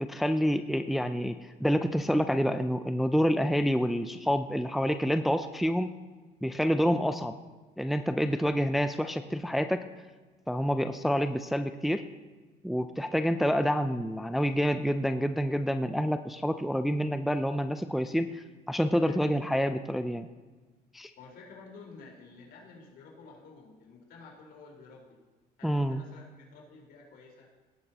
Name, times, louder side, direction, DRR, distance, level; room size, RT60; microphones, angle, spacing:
voice 1, 0.0-5.9 6.4-7.4 7.8-9.8 10.5-12.0 12.6-20.3 20.9-21.1 25.6-26.0, equal, ahead, 8 dB, 0.5 m, -28 dB
voice 2, 19.0-19.3 21.2-25.1 25.6-27.5, left 4 dB, 65° left, -3 dB, 4.5 m, -51 dB
18.5 x 10.5 x 3.0 m, 1.3 s
cardioid pair, 110°, 17 cm